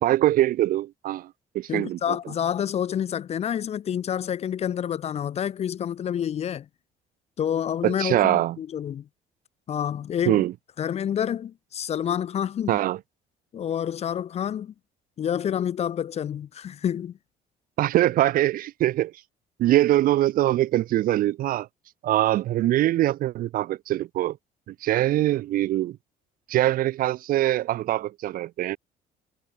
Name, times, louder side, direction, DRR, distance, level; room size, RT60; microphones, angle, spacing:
voice 1, 0.0-2.2 7.8-8.6 10.3-10.5 12.7-13.0 17.8-19.1 19.6-21.7 22.0-24.4 24.7-26.0 26.5-28.8, right 14 dB, 60° right, 0.4 m, -23 dB
voice 2, 1.7-6.7 7.4-9.1 9.7-10.4 10.8-12.8 13.5-14.7 15.2-17.1, left 9 dB, 40° left, 0.5 m, -28 dB
cardioid pair, 110°, 17 cm